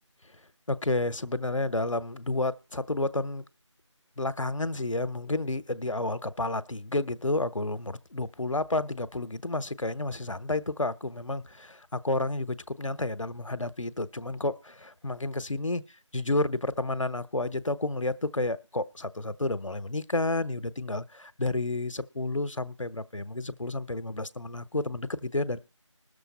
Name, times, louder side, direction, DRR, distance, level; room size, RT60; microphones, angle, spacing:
voice 1, 0.7-3.4 4.2-15.8 16.1-25.6, left 2 dB, 75° left, 1.0 m, -30 dB
20.0 x 6.9 x 4.1 m
figure-of-eight pair, 170°, 16 cm